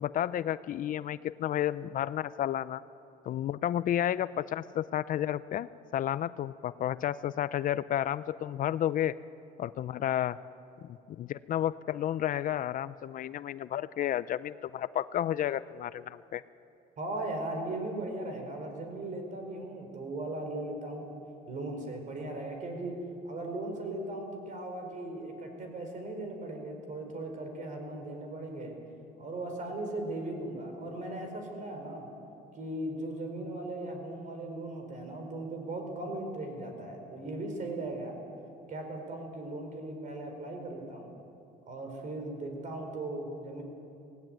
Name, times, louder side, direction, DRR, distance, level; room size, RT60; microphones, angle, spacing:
voice 1, 0.0-2.8 3.2-5.7 5.9-9.1 9.6-10.4 10.8-16.4, left 11 dB, 55° left, 16 dB, 0.5 m, -31 dB
voice 2, 17.0-21.1 21.5-22.9 23.2-28.8 29.2-32.1 32.5-38.1 38.7-41.1 41.7-43.6, right 2 dB, 50° right, 4 dB, 4.7 m, -38 dB
17.5 x 16.5 x 9.4 m, 2.6 s
cardioid pair, 110°, 17 cm